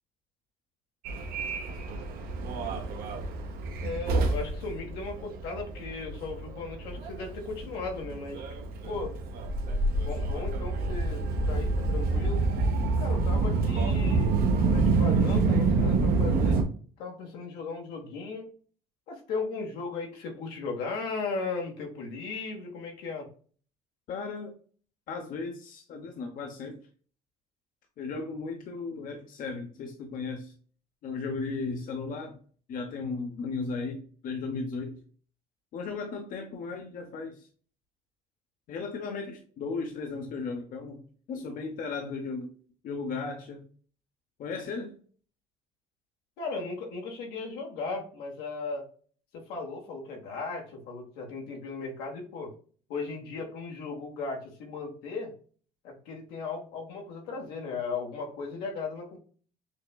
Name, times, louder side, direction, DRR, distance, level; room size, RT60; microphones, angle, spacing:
Subway metro underground, 1.0-16.6, right 3 dB, 70° right, 0.8 m, -27 dB
voice 1, 3.8-8.4 8.8-9.1 10.0-12.5 13.0-14.4 14.7-16.6 17.0-18.5 19.1-23.3 46.4-48.9 49.3-52.5 52.9-55.3 55.8-59.2, left 4 dB, 85° left, 1 dB, 1.2 m, -36 dB
voice 2, 24.1-24.5 25.1-26.8 28.0-30.5 31.0-32.4 32.7-35.0 35.7-37.5 38.7-41.0 41.3-42.5 42.8-43.6 44.4-45.0, left 4 dB, 60° left, 3 dB, 0.8 m, -35 dB
6.3 x 2.2 x 2.2 m, 0.43 s
supercardioid pair, 90°, 16 cm